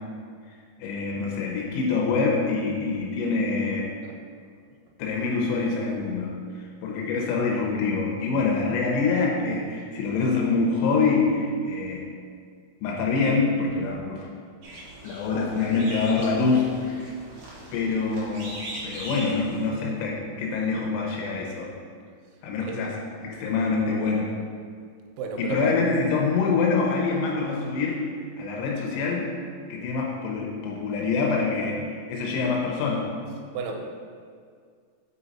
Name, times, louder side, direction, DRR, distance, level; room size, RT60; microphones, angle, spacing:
voice 1, 0.8-3.9 5.0-12.1 12.8-14.3 15.0-17.1 17.7-18.5 18.8-21.7 22.4-23.0 23.2-24.3 25.4-28.0 28.4-29.3 29.7-33.1, left 4 dB, 75° left, -2 dB, 3.4 m, -25 dB
sound 1, 14.6-19.7, right 1 dB, 65° right, 2.1 m, -40 dB
voice 2, 25.2-25.8 33.5-33.8, right 5 dB, 90° right, 2 dB, 3.4 m, -31 dB
6.5 x 5.7 x 4.1 m, 2.1 s
omnidirectional pair, 5.9 m